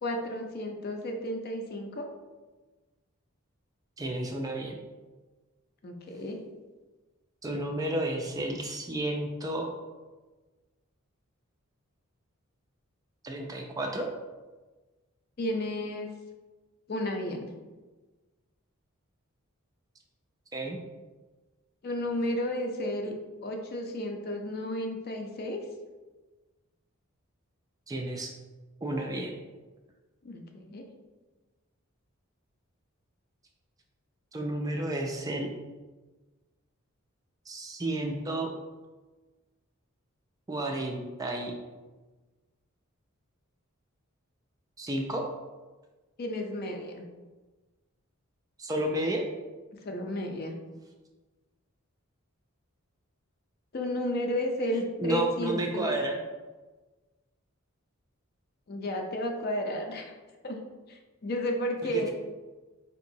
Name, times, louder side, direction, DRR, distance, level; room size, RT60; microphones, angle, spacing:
voice 1, 0.0-2.1 5.8-6.4 15.4-16.1 16.9-17.5 21.8-23.1 23.4-25.6 30.2-30.8 46.2-47.0 49.8-50.5 53.7-55.9 58.7-60.1 60.4-60.6 60.9-62.1, left 1 dB, 45° left, 3 dB, 0.4 m, -32 dB
voice 2, 4.0-4.7 7.4-9.7 13.2-14.1 20.5-20.8 27.9-28.3 28.8-29.3 34.3-35.5 37.5-38.5 40.5-41.5 44.8-45.3 48.6-49.2 55.0-56.2 61.8-62.1, right 1 dB, 15° right, 2 dB, 0.3 m, -31 dB
4.5 x 2.9 x 2.6 m, 1.3 s
head